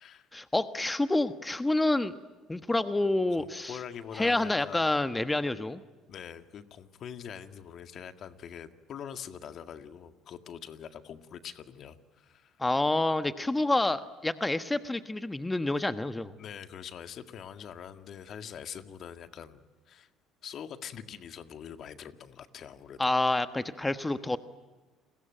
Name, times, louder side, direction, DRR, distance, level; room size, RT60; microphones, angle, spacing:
voice 1, 0.3-2.2 2.5-3.8 4.1-5.8 12.6-16.3 23.0-24.4, left 2 dB, 15° left, 11 dB, 1.2 m, -28 dB
voice 2, 3.4-4.9 6.1-12.6 16.4-20.1 20.4-23.1, left 8 dB, 55° left, 9 dB, 1.8 m, -44 dB
30.0 x 21.5 x 9.0 m, 1.3 s
supercardioid pair, 70°, 0 cm